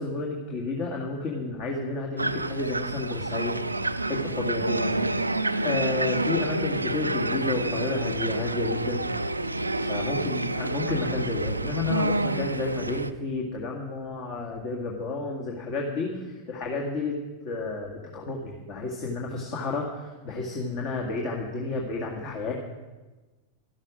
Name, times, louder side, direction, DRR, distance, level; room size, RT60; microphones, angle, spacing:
voice 1, 0.0-3.6 4.1-4.9 5.2-5.3 5.6-9.0 9.8-17.2 17.4-22.5, left 3 dB, 45° left, -1 dB, 2.0 m, -31 dB
sound 1, 2.2-13.1, right 2 dB, 85° right, 0.4 m, -28 dB
13.0 x 13.0 x 5.2 m, 1.2 s
figure-of-eight pair, 90°, 0 cm